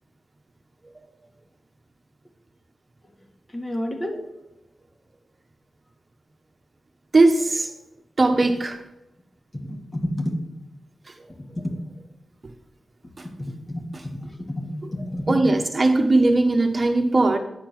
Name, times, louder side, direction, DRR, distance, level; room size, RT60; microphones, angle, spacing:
voice 1, 3.5-4.2 9.5-10.4 11.4-11.8 13.2-15.4, left 1 dB, 30° left, 2 dB, 2.0 m, -30 dB
voice 2, 7.1-7.7 8.2-8.8 15.3-17.4, right 2 dB, 40° right, 4 dB, 1.1 m, -19 dB
9.6 x 4.4 x 6.0 m, 0.87 s
cardioid pair, 50°, 0 cm